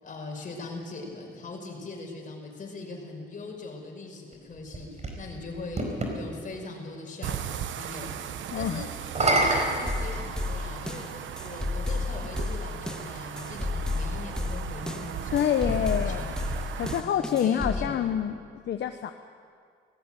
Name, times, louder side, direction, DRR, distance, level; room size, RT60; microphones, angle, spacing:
voice 1, 0.0-8.2 8.5-8.9 9.2-11.1 11.4-16.4 17.0-18.1, left 3 dB, 40° left, 1 dB, 5.5 m, -41 dB
sound 1, 4.3-6.2 9.0-10.8 11.7-11.8 15.5-17.1, right 2 dB, 35° right, 4.7 m, -29 dB
sound 2, 7.2-17.0, right 9 dB, 75° right, 1.0 m, -37 dB
voice 2, 8.5-8.8 15.3-16.2 16.8-19.1, left 9 dB, 65° left, 7 dB, 1.0 m, -27 dB
sound 3, 9.9-17.9, left 3 dB, 5° left, 1.8 m, -32 dB
19.0 x 15.0 x 9.1 m, 2.1 s
cardioid pair, 90°, 20 cm